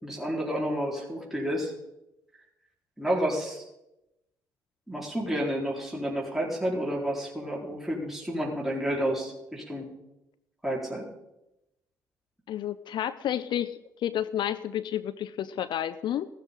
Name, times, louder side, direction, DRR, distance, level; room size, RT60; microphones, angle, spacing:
voice 1, 0.0-1.7 3.0-3.6 4.9-9.9 10.6-11.1, equal, 5° right, -4 dB, 4.4 m, -30 dB
voice 2, 12.5-16.3, left 11 dB, 55° left, 15 dB, 0.6 m, -31 dB
16.0 x 13.0 x 3.9 m, 0.89 s
hypercardioid pair, 50°, 9 cm